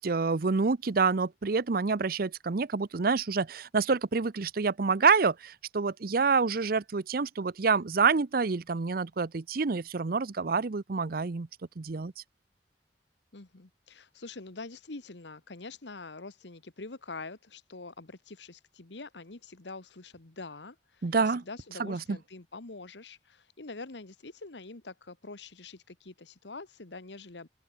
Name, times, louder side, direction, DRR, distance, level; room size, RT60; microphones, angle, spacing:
voice 1, 0.0-11.5 11.8-12.1 21.0-21.4 21.8-22.2, right 4 dB, 55° right, 0.6 m, -27 dB
voice 2, 13.3-27.5, left 3 dB, 85° left, 1.5 m, -45 dB
open air
head